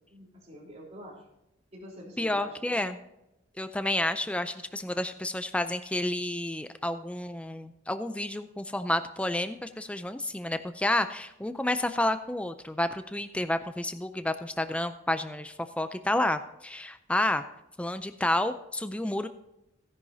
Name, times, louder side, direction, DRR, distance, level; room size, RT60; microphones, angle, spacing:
voice 1, 0.1-1.3 1.7-2.9, equal, 35° right, -3 dB, 3.8 m, -46 dB
voice 2, 2.2-3.0 3.6-17.4 17.8-19.3, left 1 dB, 5° left, 10 dB, 0.4 m, -30 dB
16.5 x 10.5 x 2.7 m, 0.88 s
head